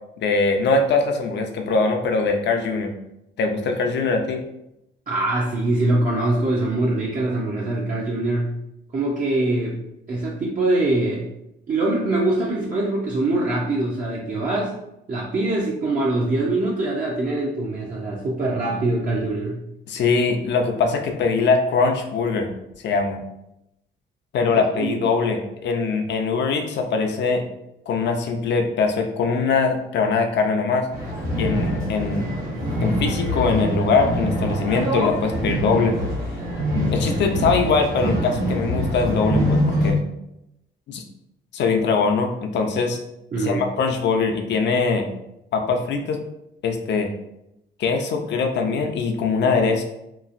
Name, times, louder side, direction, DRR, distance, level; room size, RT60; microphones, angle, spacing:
voice 1, 0.2-3.0 3.4-4.4 19.9-22.5 22.8-23.2 24.3-27.4 27.9-30.9 31.4-32.3 32.8-36.0 36.9-40.0 40.9-41.0 41.5-43.0 43.4-45.1 45.5-46.2 46.6-47.1 47.8-49.8, left 4 dB, 60° left, 4 dB, 0.5 m, -22 dB
voice 2, 5.1-8.5 8.9-9.8 10.1-11.3 11.7-14.7 15.1-19.6 24.7-25.0 43.3-43.7, right 2 dB, 40° right, -5 dB, 0.6 m, -23 dB
sound 1, 30.9-39.9, equal, 90° right, 1.1 m, -24 dB
3.0 x 2.3 x 2.5 m, 0.84 s
cardioid pair, 90°, 20 cm